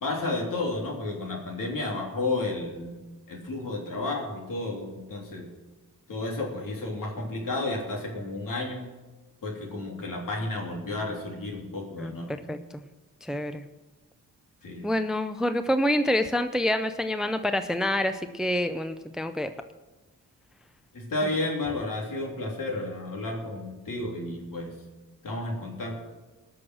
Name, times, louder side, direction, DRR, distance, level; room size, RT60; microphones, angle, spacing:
voice 1, 0.0-3.0 3.3-5.5 6.1-8.9 9.4-12.3 14.6-14.9 20.9-24.7 25.2-26.0, left 2 dB, 65° left, 0 dB, 3.3 m, -32 dB
voice 2, 12.0-12.8 13.2-13.6 14.8-19.5, left 1 dB, ahead, 9 dB, 0.5 m, -27 dB
19.0 x 6.5 x 6.2 m, 1.1 s
wide cardioid pair, 105°, 35 cm